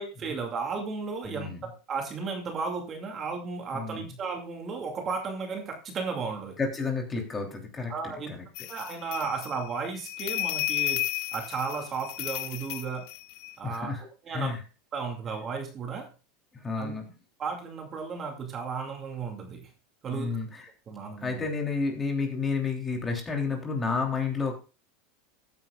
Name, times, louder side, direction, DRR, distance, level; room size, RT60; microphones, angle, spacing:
voice 1, 0.0-1.5 1.9-6.6 7.9-8.3 8.7-11.0 11.3-13.1 13.6-14.6 14.9-16.1 16.8-16.9 17.4-19.7 20.0-20.3 20.9-21.4, right 5 dB, 30° right, 3 dB, 2.4 m, -34 dB
voice 2, 1.2-1.6 3.7-4.0 6.6-7.9 13.6-14.0 14.3-14.6 16.5-17.0 20.1-20.6 21.2-24.6, left 4 dB, 15° left, 2 dB, 3.2 m, -30 dB
sound 1, 8.5-13.8, left 17 dB, 60° left, 0.8 m, -33 dB
15.0 x 9.5 x 2.4 m, 0.32 s
supercardioid pair, 145°, 0 cm